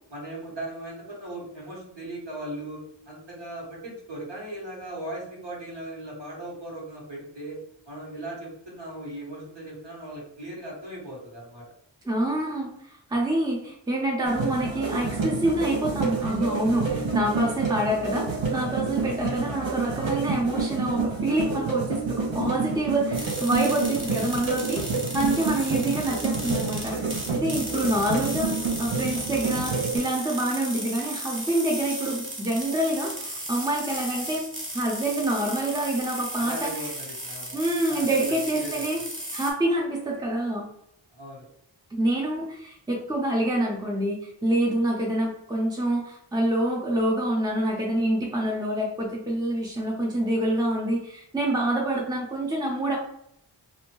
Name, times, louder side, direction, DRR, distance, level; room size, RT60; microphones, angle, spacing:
voice 1, 0.1-2.8 3.1-7.6 7.9-11.6 16.8-17.1 36.4-38.0 38.5-38.8 41.1-41.5, right 1 dB, 65° right, -4 dB, 1.4 m, -38 dB
voice 2, 12.0-12.7 13.1-24.8 25.1-34.5 34.7-36.7 37.5-39.0 39.3-40.7 41.9-53.0, right 1 dB, 10° right, -2 dB, 0.7 m, -26 dB
sound 1, 14.3-30.0, right 4 dB, 80° right, 0.7 m, -29 dB
sound 2, 23.1-39.5, right 1 dB, 25° right, 1.0 m, -35 dB
2.6 x 2.1 x 3.0 m, 0.75 s
wide cardioid pair, 45°, 45 cm